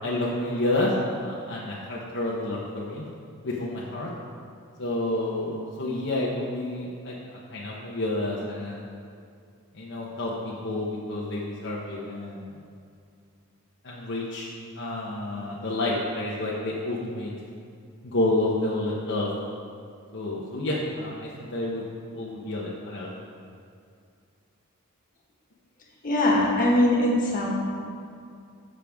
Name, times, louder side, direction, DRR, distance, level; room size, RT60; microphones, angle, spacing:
voice 1, 0.0-3.0 3.4-4.1 4.8-7.1 7.5-8.9 9.7-12.5 13.8-17.3 18.0-19.3 20.1-21.8 22.1-23.1, left 2 dB, 55° left, -5 dB, 1.0 m, -29 dB
voice 2, 26.0-27.5, left 1 dB, 40° left, -3 dB, 1.7 m, -21 dB
14.0 x 6.7 x 3.6 m, 2.3 s
head